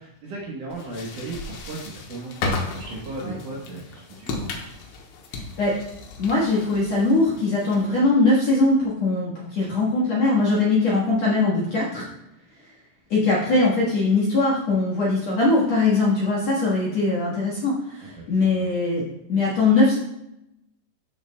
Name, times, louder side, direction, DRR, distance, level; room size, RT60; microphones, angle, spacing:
voice 1, 0.0-2.4 2.7-4.5 18.1-18.2 18.6-18.7, right 2 dB, 65° right, -3 dB, 2.2 m, -36 dB
sound 1, 0.7-8.0, left 3 dB, 85° left, 3.2 m, -34 dB
voice 2, 5.3-5.8 6.2-12.1 13.1-19.9, left 3 dB, 55° left, -6 dB, 2.0 m, -21 dB
13.5 x 5.7 x 2.2 m, 0.83 s
omnidirectional pair, 4.8 m